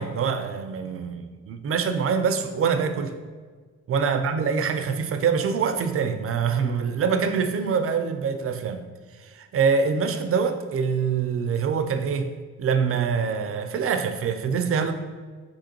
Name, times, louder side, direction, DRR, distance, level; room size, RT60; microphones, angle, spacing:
voice 1, 0.0-3.1 3.9-8.8 9.2-12.3 12.6-14.9, right 6 dB, 45° right, 8 dB, 0.5 m, -25 dB
5.2 x 3.5 x 2.9 m, 1.5 s
cardioid pair, 90°, 30 cm